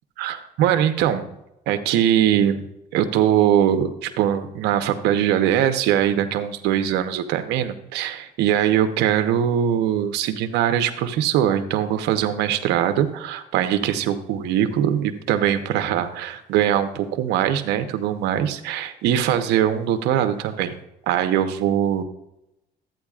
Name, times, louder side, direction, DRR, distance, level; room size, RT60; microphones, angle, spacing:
voice 1, 0.2-1.3 1.7-2.6 2.9-20.7 21.1-22.0, right 10 dB, 90° right, 8 dB, 0.9 m, -21 dB
13.0 x 9.1 x 2.4 m, 0.88 s
cardioid pair, 110°, 17 cm